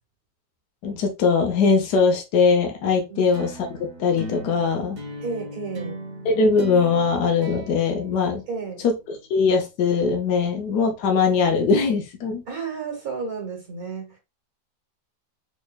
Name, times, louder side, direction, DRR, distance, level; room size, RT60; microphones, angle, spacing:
voice 1, 0.8-5.0 6.2-8.4 8.8-12.4, left 5 dB, 75° left, 1.3 m, -21 dB
sound 1, 3.3-8.9, right 1 dB, 35° right, 0.8 m, -38 dB
voice 2, 5.2-6.0 8.5-8.8 12.5-14.2, right 5 dB, 60° right, 1.8 m, -32 dB
4.5 x 3.4 x 2.4 m
omnidirectional pair, 1.8 m